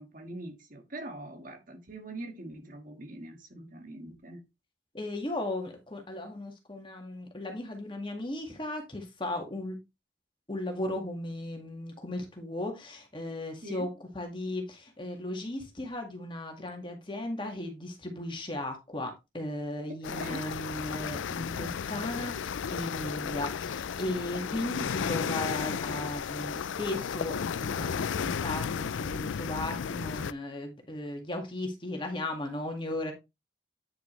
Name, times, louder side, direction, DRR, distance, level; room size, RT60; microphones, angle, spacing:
voice 1, 0.0-4.4 13.6-13.9 20.1-20.4, right 1 dB, 45° right, 1.7 m, -43 dB
voice 2, 4.9-9.8 10.5-33.1, left 1 dB, 25° left, 1.9 m, -36 dB
sound 1, 20.0-30.3, left 7 dB, 80° left, 0.4 m, -34 dB
9.3 x 6.0 x 3.2 m
head